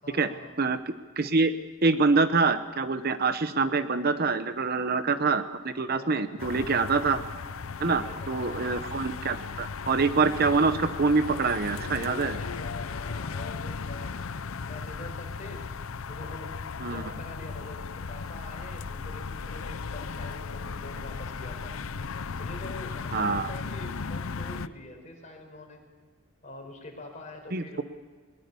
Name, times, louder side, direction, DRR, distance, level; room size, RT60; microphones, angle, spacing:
voice 1, 0.0-0.5 6.0-6.7 7.8-8.7 12.3-14.1 14.4-15.7 16.1-16.5 16.8-21.7 22.4-25.8 26.4-27.8, left 2 dB, 35° left, 2 dB, 4.8 m, -45 dB
voice 2, 0.6-1.5 1.8-7.2 7.8-12.4 16.8-17.0 23.1-23.5 27.5-27.8, right 4 dB, 45° right, 11 dB, 0.8 m, -25 dB
sound 1, 6.4-24.7, left 5 dB, 70° left, 0.6 m, -36 dB
21.0 x 21.0 x 7.0 m, 1.5 s
head